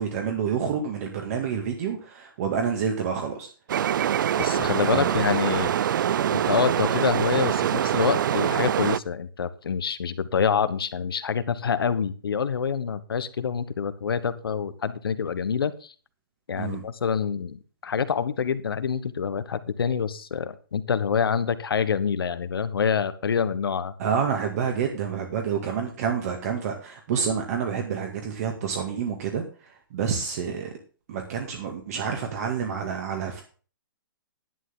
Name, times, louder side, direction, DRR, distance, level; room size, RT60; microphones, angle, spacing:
voice 1, 0.0-3.5 4.9-5.2 16.6-16.8 24.0-30.7 31.1-33.4, right 7 dB, 45° right, 3 dB, 2.0 m, -28 dB
sound 1, 3.7-9.0, right 10 dB, 60° right, 0.5 m, -24 dB
voice 2, 4.4-5.9 6.3-15.9 16.5-23.9, left 6 dB, 90° left, 12 dB, 1.3 m, -26 dB
11.0 x 9.5 x 3.9 m, 0.38 s
hypercardioid pair, 160°, 12 cm